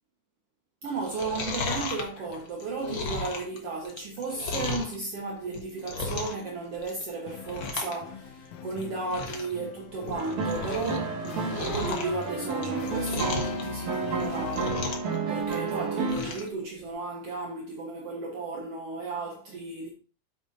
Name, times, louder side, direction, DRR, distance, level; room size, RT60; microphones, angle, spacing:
voice 1, 0.8-14.9 15.3-19.9, right 3 dB, 60° right, 2.2 m, -34 dB
Chewing mastication, 1.0-5.0 5.4-6.5 6.7-7.1 7.4-8.0 8.2-8.3 8.8-8.9 9.1-9.5 9.9-11.0 11.2-13.6 14.1-15.1 15.4-16.5 16.9-17.0, left 4 dB, 50° left, 1.8 m, -34 dB
sound 1, 7.3-15.1, left 7 dB, 85° left, 2.3 m, -42 dB
sound 2, 10.1-16.4, right 4 dB, 75° right, 2.9 m, -31 dB
8.8 x 7.8 x 2.7 m
omnidirectional pair, 3.3 m